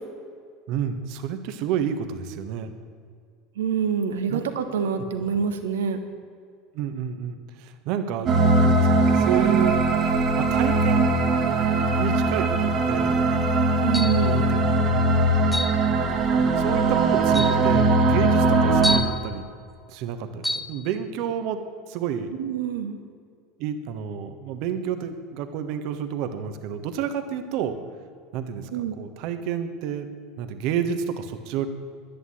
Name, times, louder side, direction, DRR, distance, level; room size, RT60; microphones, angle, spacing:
voice 1, 0.7-2.7 4.3-4.4 6.7-9.9 10.4-11.1 12.0-13.2 14.3-15.1 16.6-19.4 19.9-22.3 23.6-27.8 28.3-30.1 30.4-31.7, right 8 dB, 60° right, 8 dB, 1.3 m, -30 dB
voice 2, 3.6-6.0 13.8-14.4 22.4-23.0 28.7-29.0, right 7 dB, 75° right, 7 dB, 1.4 m, -26 dB
sound 1, 8.3-19.0, right 2 dB, 40° right, 1.8 m, -20 dB
sound 2, 13.9-14.3 15.5-15.8 16.7-16.8 17.3-17.6 18.8-19.2 20.4-20.7, left 1 dB, 5° left, 0.9 m, -27 dB
11.0 x 10.0 x 8.6 m, 2.2 s
hypercardioid pair, 80°, 0 cm